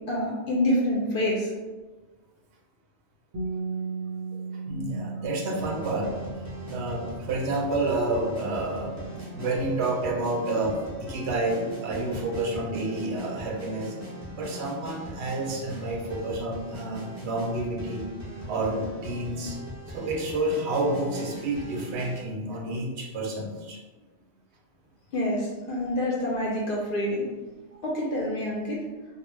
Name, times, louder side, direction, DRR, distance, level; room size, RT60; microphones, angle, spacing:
voice 1, 0.1-1.5 25.1-27.2 27.8-28.8, left 1 dB, 60° left, -4 dB, 0.6 m, -27 dB
Bass guitar, 3.3-9.6, right 4 dB, 90° right, 1.1 m, -37 dB
voice 2, 4.5-6.2 6.7-14.0 14.4-18.1 18.5-19.6 19.9-23.8, right 2 dB, 70° right, 0 dB, 0.8 m, -29 dB
sound 1, 5.5-22.2, equal, 20° right, 0.6 m, -40 dB
2.3 x 2.0 x 3.1 m, 1.3 s
omnidirectional pair, 1.2 m